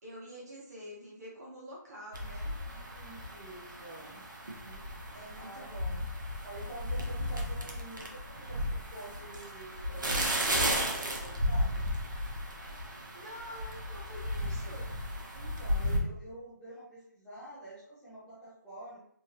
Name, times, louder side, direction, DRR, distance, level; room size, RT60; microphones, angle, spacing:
voice 1, 0.0-2.5 5.1-6.1 13.1-15.0, equal, 55° right, -4 dB, 1.3 m, -47 dB
sound 1, 2.1-16.0, equal, 80° right, 0.8 m, -34 dB
voice 2, 2.7-4.2 4.6-4.9 5.4-5.7 6.4-11.8 15.3-19.0, right 2 dB, 5° left, -9 dB, 0.5 m, -48 dB
2.9 x 2.5 x 2.8 m, 0.68 s
figure-of-eight pair, 160°, 10 cm